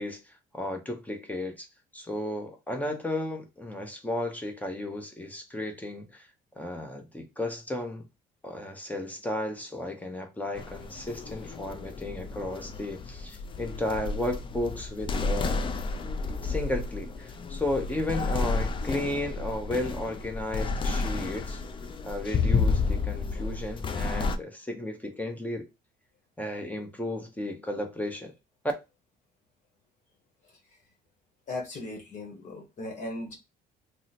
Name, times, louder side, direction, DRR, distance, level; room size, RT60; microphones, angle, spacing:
voice 1, 0.0-1.7 1.9-6.3 6.5-8.1 8.4-15.6 16.4-21.6 22.0-25.7 26.4-28.3, left 1 dB, 10° left, 0.8 m, -34 dB
sound 1, 10.6-24.4, left 4 dB, 30° left, 0.4 m, -31 dB
voice 2, 31.5-33.3, left 2 dB, 45° left, 1.1 m, -37 dB
2.8 x 2.1 x 4.0 m
cardioid pair, 110°, 17 cm